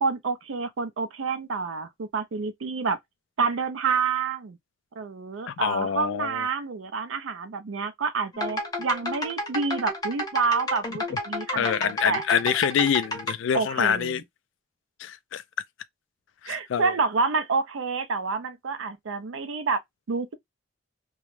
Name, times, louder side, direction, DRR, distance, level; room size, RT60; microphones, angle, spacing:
voice 1, 0.0-3.0 3.4-4.6 5.0-12.2 13.5-14.2 16.5-19.8 20.1-20.3, right 4 dB, 80° right, 0.5 m, -28 dB
voice 2, 5.5-6.5 11.1-11.2 11.6-14.2 15.0-15.4 16.4-16.9, left 8 dB, 65° left, 0.3 m, -26 dB
sound 1, 8.3-13.3, left 1 dB, 20° left, 0.6 m, -31 dB
2.2 x 2.0 x 3.0 m
head